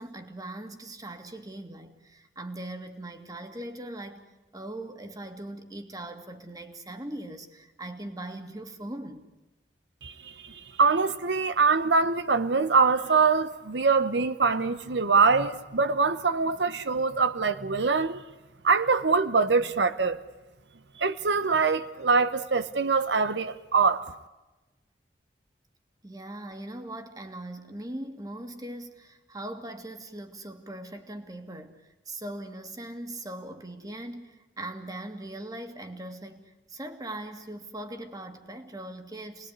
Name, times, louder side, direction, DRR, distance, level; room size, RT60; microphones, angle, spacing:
voice 1, 0.0-9.3 26.0-39.5, right 1 dB, 20° right, 2.1 m, -40 dB
voice 2, 10.0-18.2 18.6-20.2 21.0-24.0, right 4 dB, 90° right, 1.0 m, -24 dB
28.0 x 20.5 x 9.7 m
head